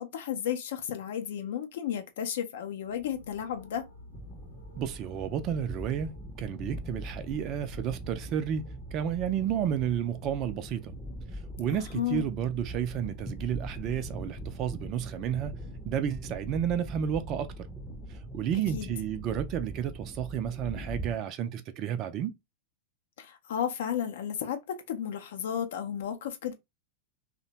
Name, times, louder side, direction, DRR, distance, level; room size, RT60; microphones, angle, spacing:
voice 1, 0.0-3.9 11.7-12.2 18.7-18.9 23.2-26.5, left 9 dB, 55° left, 0.5 m, -33 dB
sound 1, 2.8-18.8, left 2 dB, 85° left, 0.8 m, -52 dB
sound 2, 4.1-21.2, right 1 dB, 10° left, 0.6 m, -42 dB
voice 2, 4.8-10.9 11.6-15.6 15.9-17.5 18.1-22.3, right 9 dB, 35° right, 0.4 m, -31 dB
2.7 x 2.1 x 2.8 m
figure-of-eight pair, 90°, 0 cm